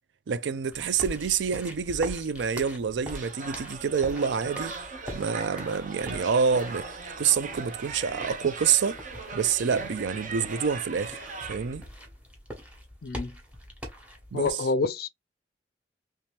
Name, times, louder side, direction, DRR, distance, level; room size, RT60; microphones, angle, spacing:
voice 1, 0.3-4.8 5.1-9.0 9.3-11.2 11.5-11.8 14.3-14.6, right 6 dB, 75° right, 0.4 m, -27 dB
sound 1, 0.7-14.5, equal, 5° right, 1.1 m, -43 dB
sound 2, 3.1-11.8, right 4 dB, 45° right, 0.7 m, -39 dB
voice 2, 13.0-13.4 14.3-15.1, left 4 dB, 55° left, 0.4 m, -27 dB
3.1 x 2.9 x 3.3 m
head